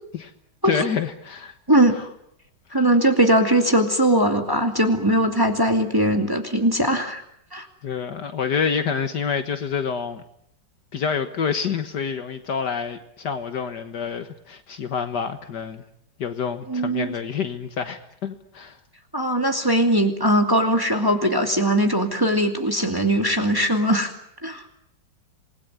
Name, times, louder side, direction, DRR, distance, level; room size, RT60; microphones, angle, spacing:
voice 1, 0.6-1.5 1.9-2.0 7.8-10.2 10.9-15.8 16.2-18.8, left 6 dB, 70° left, 9 dB, 1.9 m, -27 dB
voice 2, 2.7-7.2 7.5-7.7 16.7-17.1 19.1-24.1 24.4-24.6, right 1 dB, 10° right, 4 dB, 2.4 m, -20 dB
27.5 x 21.0 x 9.4 m, 0.73 s
omnidirectional pair, 1.9 m